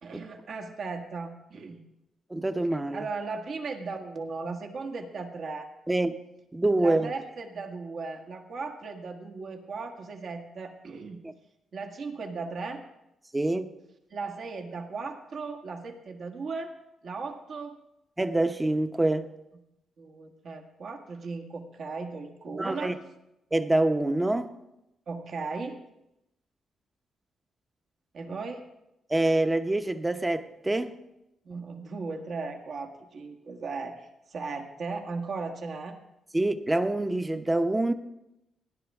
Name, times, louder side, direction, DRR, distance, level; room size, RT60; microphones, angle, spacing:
voice 1, 0.0-1.8 2.9-5.7 6.8-11.2 11.7-12.8 14.1-16.7 17.0-17.7 20.0-23.0 25.1-25.8 28.1-28.6 31.5-36.0, right 4 dB, 65° right, 1.8 m, -37 dB
voice 2, 2.3-3.1 5.9-6.1 6.5-7.1 11.2-11.3 13.3-13.7 18.2-19.3 22.5-22.9 23.5-24.5 29.1-31.0 36.3-37.9, right 2 dB, 20° right, 0.9 m, -26 dB
17.5 x 10.5 x 3.6 m
cardioid pair, 70°, 0 cm